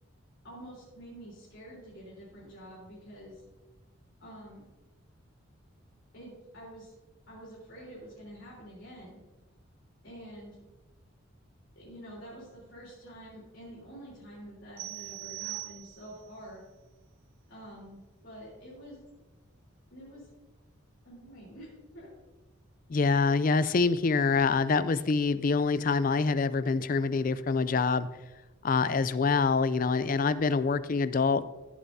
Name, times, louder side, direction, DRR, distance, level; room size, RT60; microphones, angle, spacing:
voice 1, 0.4-3.4 4.2-4.6 6.1-6.9 7.3-9.2 10.0-10.6 11.8-16.6 17.5-19.0 19.9-20.3 21.0-21.7 21.9-22.1, equal, 60° left, -8 dB, 3.8 m, -47 dB
sound 1, 14.8-16.3, right 19 dB, 60° right, 2.3 m, -41 dB
voice 2, 22.9-28.1 28.6-31.4, left 4 dB, 40° left, 14 dB, 0.4 m, -25 dB
15.5 x 7.9 x 2.7 m, 1.1 s
head